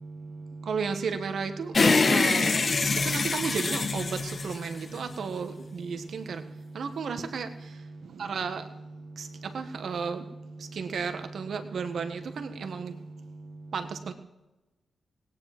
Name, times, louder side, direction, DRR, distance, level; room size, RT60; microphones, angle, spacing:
voice 1, 0.6-1.7 2.1-2.5 3.0-4.2 4.4-6.4 6.7-7.5 8.2-8.6 9.2-9.3 9.5-10.2 10.8-12.9 13.7-14.1, right 5 dB, 70° right, 8 dB, 1.5 m, -33 dB
sound 1, 1.7-5.2, left 4 dB, 50° left, 1.2 m, -25 dB
17.5 x 9.7 x 6.0 m, 1.0 s
supercardioid pair, 45°, 0 cm